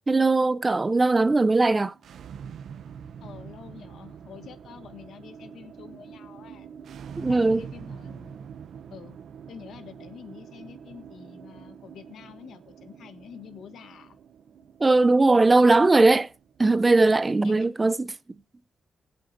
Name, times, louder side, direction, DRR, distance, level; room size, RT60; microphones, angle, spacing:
voice 1, 0.1-1.9 7.2-7.7 14.8-16.3 16.6-18.1, right 3 dB, 20° right, 0.5 m, -19 dB
sound 1, 1.9-16.9, right 7 dB, 75° right, 0.6 m, -45 dB
voice 2, 3.2-6.7 7.3-8.4 8.9-9.2 9.5-14.2 17.4-17.7, left 7 dB, 80° left, 1.6 m, -47 dB
23.0 x 7.8 x 2.6 m
cardioid pair, 125°, 0 cm